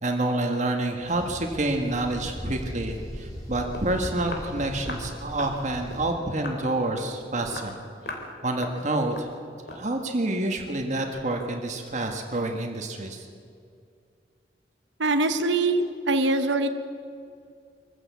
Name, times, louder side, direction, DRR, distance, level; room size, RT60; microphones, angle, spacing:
voice 1, 0.0-7.8 8.4-9.3 9.7-13.3, right 2 dB, 40° right, 3 dB, 1.6 m, -28 dB
sound 1, 1.0-6.1, equal, 15° left, 4.2 m, -38 dB
Walk footsteps, 3.7-3.9 4.3-4.5 4.9-5.1 5.4-5.6 5.9-6.1 6.4-6.6 7.0-7.2 7.5-7.7 8.1-8.3 8.6-8.8 9.1-9.3 9.7-9.9, left 2 dB, 60° left, 3.3 m, -38 dB
voice 2, 15.0-16.7, right 2 dB, 85° right, 8 dB, 1.1 m, -23 dB
24.0 x 15.0 x 8.3 m, 2.3 s
head